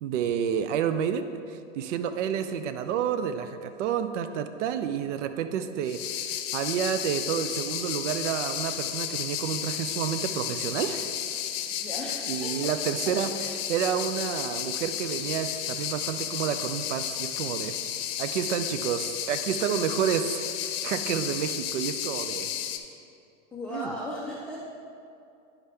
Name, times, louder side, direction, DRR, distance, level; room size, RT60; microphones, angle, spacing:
voice 1, 0.0-11.1 12.3-17.7 18.2-22.5 23.7-23.9, right 8 dB, 70° right, 10 dB, 0.6 m, -30 dB
sound 1, 5.9-22.8, left 10 dB, 55° left, 0.7 m, -33 dB
voice 2, 11.8-12.7 23.5-24.6, left 1 dB, 5° left, -7 dB, 0.3 m, -36 dB
9.8 x 5.6 x 3.4 m, 2.5 s
hypercardioid pair, 130°, 38 cm